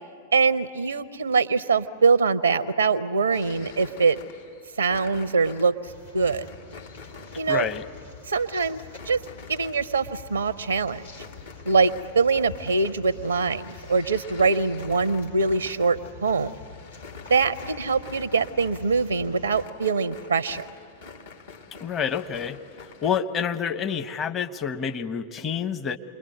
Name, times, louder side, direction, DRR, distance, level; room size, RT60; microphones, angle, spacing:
voice 1, 0.3-4.2 4.8-6.5 7.3-7.7 8.2-9.2 9.5-11.0 11.6-16.5 17.3-20.7, right 4 dB, 75° right, 15 dB, 0.6 m, -23 dB
sound 1, 3.3-10.3 10.6-23.2, left 4 dB, 65° left, 2.1 m, -47 dB
sound 2, 5.8-19.7, left 5 dB, 80° left, 2.9 m, -46 dB
voice 2, 7.5-7.9 21.8-22.6 23.0-26.0, left 7 dB, 25° left, 8 dB, 1.0 m, -28 dB
28.5 x 22.0 x 9.5 m, 2.3 s
figure-of-eight pair, 90°, 0 cm